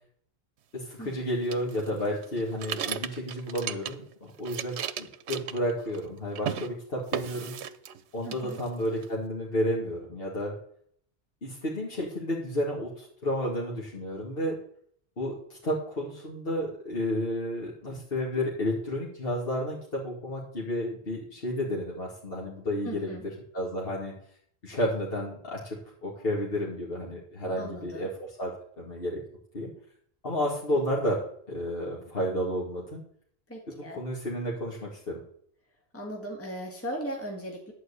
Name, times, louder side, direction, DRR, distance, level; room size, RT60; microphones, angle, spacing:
voice 1, 0.7-7.5 8.1-10.5 11.4-14.6 15.2-23.1 23.5-24.1 24.6-28.1 28.4-28.5 28.8-29.2 29.5-29.7 30.2-31.2 31.5-33.0 33.7-35.2, equal, 60° left, -4 dB, 2.3 m, -31 dB
sound 1, 1.5-4.1 4.4-6.1 6.3-6.7 7.1-8.0 8.3-9.1, right 9 dB, 90° right, 1.0 m, -36 dB
voice 2, 8.2-8.6 22.8-23.2 27.6-28.1 33.5-34.0 35.9-37.7, equal, 10° left, 0 dB, 1.8 m, -38 dB
11.0 x 4.6 x 8.3 m, 0.63 s
omnidirectional pair, 1.1 m